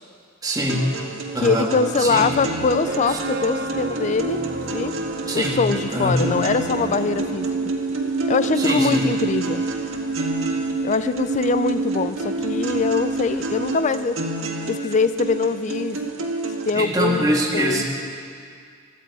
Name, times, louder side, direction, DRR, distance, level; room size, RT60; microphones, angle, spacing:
voice 1, 0.4-0.9 1.3-1.7 2.0-2.3 3.1-3.2 5.3-5.6 5.9-6.3 8.6-9.0 16.7-17.8, right 1 dB, 20° right, -1 dB, 1.8 m, -23 dB
sound 1, 0.7-16.7, right 2 dB, 85° right, 1.6 m, -30 dB
voice 2, 1.4-4.4 4.7-4.9 5.3-7.5 8.3-9.6 10.8-14.2 14.7-16.0 16.6-17.8, left 4 dB, 35° left, 13 dB, 0.4 m, -23 dB
sound 2, 1.9-7.3, right 1 dB, 40° right, 1.6 m, -36 dB
sound 3, 2.9-13.8, right 3 dB, 55° right, 0.5 m, -29 dB
16.5 x 12.5 x 4.8 m, 2.2 s
head